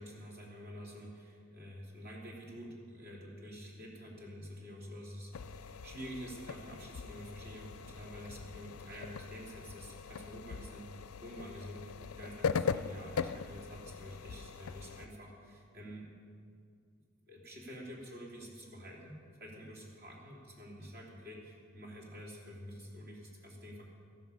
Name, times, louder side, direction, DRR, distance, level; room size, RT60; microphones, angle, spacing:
voice 1, 0.0-16.1 17.3-23.9, equal, 50° right, -2 dB, 3.0 m, -48 dB
sound 1, 5.3-15.1, left 6 dB, 80° left, 0.4 m, -40 dB
14.0 x 12.0 x 5.6 m, 2.2 s
head